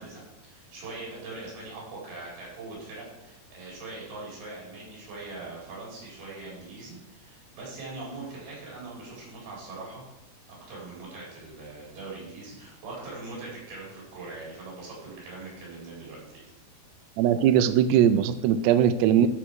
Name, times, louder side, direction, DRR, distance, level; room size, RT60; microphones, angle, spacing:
voice 1, 0.0-10.0 10.5-16.4, right 3 dB, 70° right, -5 dB, 6.3 m, -41 dB
voice 2, 17.2-19.3, right 10 dB, 90° right, 12 dB, 2.7 m, -20 dB
13.0 x 4.7 x 6.2 m, 0.99 s
omnidirectional pair, 4.7 m